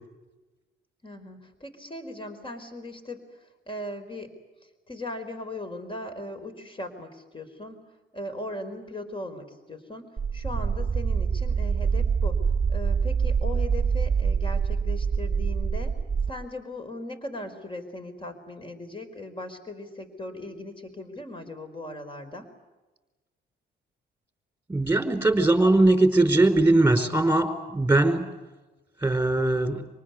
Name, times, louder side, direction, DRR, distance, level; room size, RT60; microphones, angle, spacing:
voice 1, 1.0-4.4 4.9-7.8 8.1-16.0 16.3-22.5, left 1 dB, 25° left, 7 dB, 4.7 m, -38 dB
sound 1, 10.2-16.3, right 6 dB, 30° right, 1.0 m, -25 dB
voice 2, 24.7-28.3 29.0-29.8, right 2 dB, 10° right, 7 dB, 4.8 m, -20 dB
27.0 x 19.5 x 9.6 m, 1.2 s
cardioid pair, 90°, 20 cm